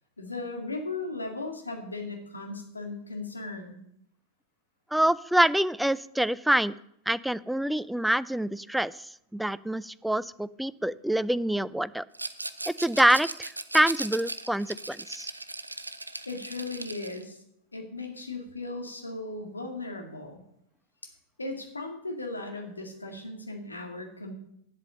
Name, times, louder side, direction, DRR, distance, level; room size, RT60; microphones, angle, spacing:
voice 1, 0.2-3.8 16.3-17.4 17.7-20.4 21.4-24.3, left 2 dB, 80° left, 3 dB, 2.1 m, -37 dB
voice 2, 4.9-6.8 7.1-12.0 12.7-15.3, right 1 dB, ahead, 18 dB, 0.4 m, -26 dB
Rattle, 12.1-17.2, right 2 dB, 85° right, 0.6 m, -37 dB
8.5 x 8.2 x 7.5 m, 0.74 s
figure-of-eight pair, 90°, 0 cm